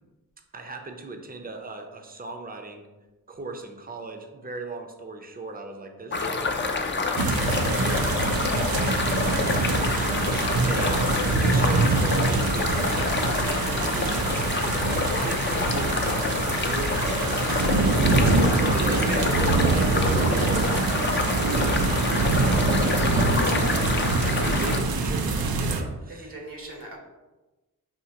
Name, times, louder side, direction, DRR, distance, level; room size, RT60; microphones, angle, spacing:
voice 1, 0.5-2.9 3.3-10.4 10.6-21.0 21.3-23.9 24.2-26.4, right 3 dB, 25° right, 4 dB, 0.5 m, -38 dB
sound 1, 6.1-24.8, left 4 dB, 35° left, 0.4 m, -27 dB
sound 2, 7.2-25.8, right 3 dB, 85° right, 0.5 m, -24 dB
voice 2, 10.6-11.1 18.8-19.5 26.1-27.0, right 1 dB, 65° right, 0 dB, 1.0 m, -39 dB
5.7 x 2.7 x 2.8 m, 1.1 s
wide cardioid pair, 70°, 35 cm